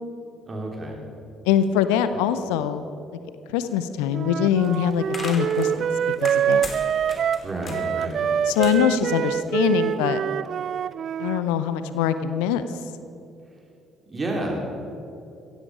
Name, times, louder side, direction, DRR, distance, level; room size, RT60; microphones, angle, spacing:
voice 1, 0.5-1.0 7.4-8.3 14.0-14.6, right 1 dB, 30° right, 0 dB, 4.1 m, -30 dB
voice 2, 1.4-2.9 3.5-5.9 6.2-6.6 8.5-10.2 11.2-12.6, left 9 dB, 70° left, 11 dB, 0.7 m, -23 dB
Wind instrument woodwind instrument, 4.1-11.4, right 8 dB, 50° right, 0.3 m, -25 dB
sound 1, 4.5-9.8, left 3 dB, 40° left, 2.9 m, -39 dB
16.0 x 15.5 x 5.1 m, 2.7 s
figure-of-eight pair, 50°, 0 cm